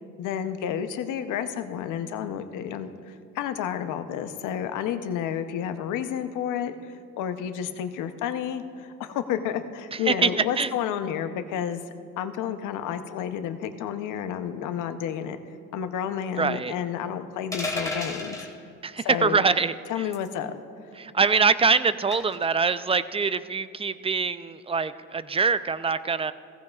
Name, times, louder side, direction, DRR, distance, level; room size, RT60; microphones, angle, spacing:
voice 1, 0.2-11.8 12.2-15.4 15.7-18.4 19.0-19.5 19.9-20.6, left 9 dB, 90° left, 9 dB, 0.7 m, -31 dB
voice 2, 16.4-16.7 18.8-20.0 21.0-26.3, right 5 dB, 20° right, 14 dB, 0.4 m, -24 dB
sound 1, 17.5-18.5 20.1-20.4 22.1-22.4, left 2 dB, 10° left, 2.2 m, -31 dB
16.5 x 15.0 x 2.4 m, 2.4 s
cardioid pair, 90°, 30 cm